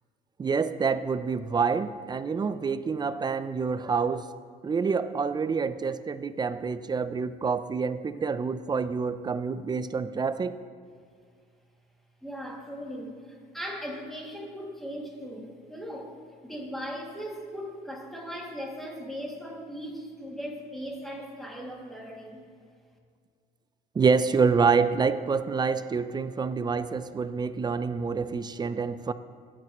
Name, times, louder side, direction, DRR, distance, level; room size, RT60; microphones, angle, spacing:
voice 1, 0.4-4.3 4.6-10.6 23.9-29.1, right 5 dB, 25° right, 12 dB, 0.5 m, -27 dB
voice 2, 12.2-22.5, equal, ahead, -2 dB, 2.3 m, -38 dB
17.0 x 8.6 x 3.0 m, 2.1 s
cardioid pair, 110°, 17 cm